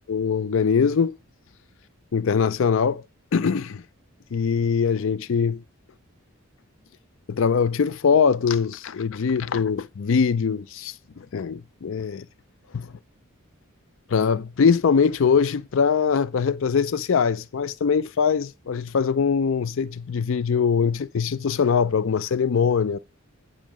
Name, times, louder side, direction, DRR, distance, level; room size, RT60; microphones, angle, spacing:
voice 1, 0.1-1.1 2.1-3.0 3.3-3.8 4.3-5.6 7.3-12.2 12.7-12.9 14.1-23.0, left 6 dB, 60° left, 0.4 m, -22 dB
9.2 x 6.2 x 4.9 m
head